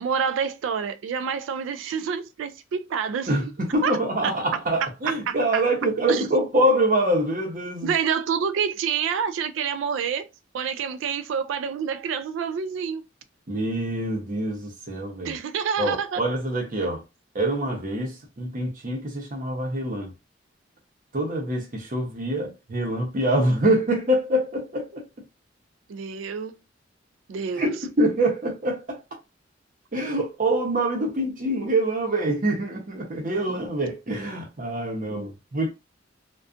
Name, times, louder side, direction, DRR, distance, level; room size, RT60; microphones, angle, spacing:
voice 1, 0.0-3.3 3.8-4.0 4.2-4.3 4.8-5.6 6.1-6.2 7.8-10.3 10.5-13.0 15.2-16.2 25.9-26.6 27.3-27.7 33.5-33.6 35.1-35.3, right 7 dB, 80° right, 0.3 m, -28 dB
voice 2, 3.3-7.9 13.5-15.4 15.8-17.0 17.3-20.1 21.1-25.0 27.5-29.0 29.9-35.7, right 1 dB, 45° right, 0.8 m, -25 dB
2.4 x 2.3 x 2.4 m
head